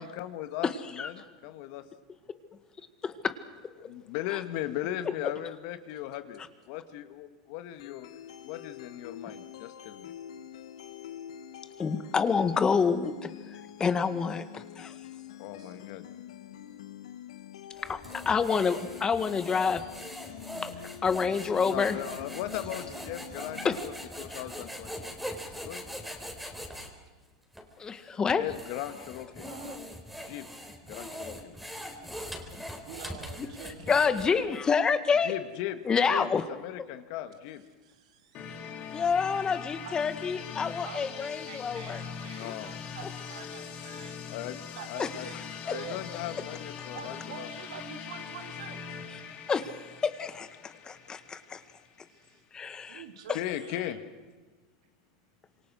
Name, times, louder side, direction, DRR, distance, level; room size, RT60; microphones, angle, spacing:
voice 1, 0.0-1.8 3.8-8.1 8.4-10.1 15.4-16.0 21.6-23.9 24.2-25.1 25.6-25.8 28.3-29.5 30.2-30.5 30.8-31.5 35.2-35.8 36.1-37.6 42.0-42.7 44.3-47.5 50.7-51.0 53.3-54.0, left 13 dB, 65° left, 9 dB, 1.9 m, -38 dB
voice 2, 0.6-1.1 3.0-3.3 4.3-4.4 5.0-5.1 11.8-15.0 17.9-18.0 18.2-19.8 20.6-20.7 21.0-22.0 23.6-23.8 24.3-24.4 27.8-28.4 33.9-35.3 35.9-36.4 38.9-42.0 42.4-42.5 45.0-45.4 45.7-45.8 49.5-49.7 50.0-51.6 52.5-53.0 53.3-53.4, left 6 dB, 25° left, 10 dB, 1.8 m, -28 dB
sound 1, 7.8-23.8, left 10 dB, 85° left, 1.5 m, -46 dB
sound 2, 17.8-26.9 27.5-27.7 28.3-34.6, equal, ahead, 4.0 m, -42 dB
voice 3, 22.7-23.0 29.3-29.8 32.9-34.5 37.8-38.6 39.8-40.0 40.8-44.2 44.8-46.0 46.9-49.0 52.1-52.4 52.9-54.0, right 8 dB, 80° right, 5 dB, 3.0 m, -47 dB
sound 3, 38.3-52.1, left 7 dB, 45° left, 3.4 m, -42 dB
26.5 x 23.0 x 6.4 m, 1.3 s
supercardioid pair, 110°, 3 cm